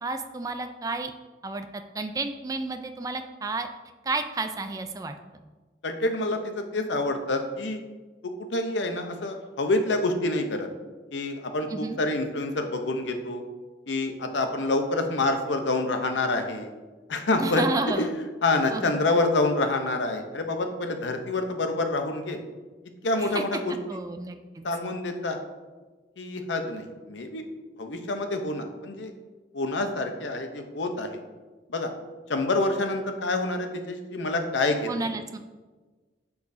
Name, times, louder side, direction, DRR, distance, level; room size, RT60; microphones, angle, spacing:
voice 1, 0.0-1.1 1.4-3.7 4.0-5.2 11.7-12.0 17.4-18.1 18.7-19.0 23.2-23.4 23.9-24.6 34.9-35.4, right 3 dB, 20° right, 7 dB, 0.3 m, -31 dB
voice 2, 5.8-7.8 8.2-10.7 11.1-13.4 13.9-16.7 17.1-17.7 18.0-18.1 18.4-22.4 23.0-23.8 24.6-25.4 26.2-27.4 27.8-29.1 29.5-31.2 31.7-31.9 32.3-35.1, left 2 dB, 80° left, 6 dB, 0.7 m, -27 dB
8.0 x 4.8 x 2.7 m, 1.3 s
head